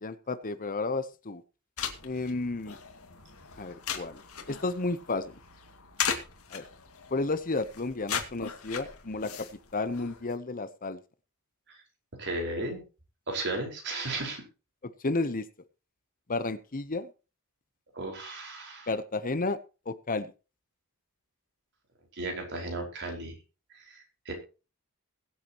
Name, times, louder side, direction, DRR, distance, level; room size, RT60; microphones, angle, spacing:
voice 1, 0.0-1.4 2.0-2.8 3.6-4.2 4.5-5.4 6.5-6.6 7.1-9.5 9.7-11.0 15.0-15.4 16.3-17.1 18.9-19.6 19.9-20.3, left 3 dB, 40° left, 12 dB, 0.9 m, -32 dB
sound 1, 1.8-10.3, left 7 dB, 75° left, 2.3 m, -38 dB
voice 2, 12.2-12.8 13.3-14.4 17.9-18.9 22.2-23.3 23.9-24.3, right 2 dB, 55° right, 2 dB, 5.0 m, -35 dB
21.5 x 8.5 x 3.0 m, 0.33 s
head